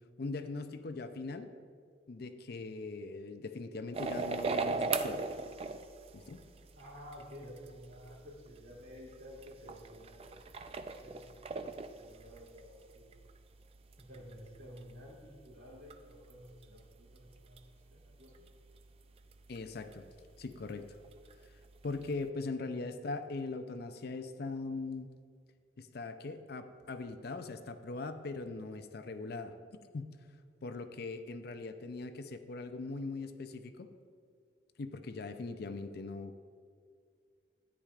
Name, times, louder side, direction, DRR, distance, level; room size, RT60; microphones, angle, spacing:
voice 1, 0.2-1.5 2.1-5.3 6.1-6.4 19.5-20.0 20.4-20.9 21.8-25.1 25.8-29.5 29.9-30.2 30.6-33.9 34.8-36.4, left 3 dB, 55° left, 9 dB, 0.5 m, -40 dB
sound 1, 3.9-22.3, right 4 dB, 30° right, 0.4 m, -42 dB
voice 2, 6.7-13.1 14.0-17.6 17.9-18.5, equal, 60° right, -5 dB, 2.6 m, -52 dB
13.5 x 9.8 x 2.4 m, 2.1 s
head